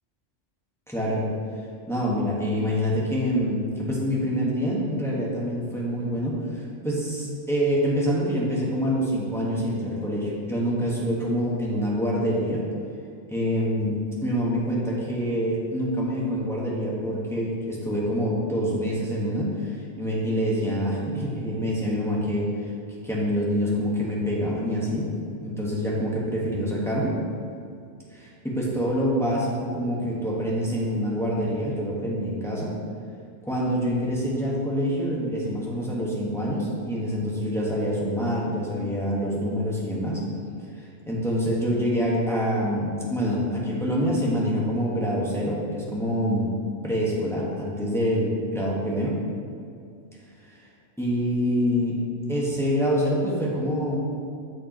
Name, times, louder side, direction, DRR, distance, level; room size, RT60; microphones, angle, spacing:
voice 1, 0.9-1.2 1.9-12.6 13.3-22.5 23.0-25.1 25.4-27.2 28.1-32.7 33.4-40.2 41.1-46.5 46.8-49.2 51.0-52.0 52.3-54.0, equal, ahead, -5 dB, 1.5 m, -26 dB
14.0 x 5.0 x 3.1 m, 2.3 s
omnidirectional pair, 1.3 m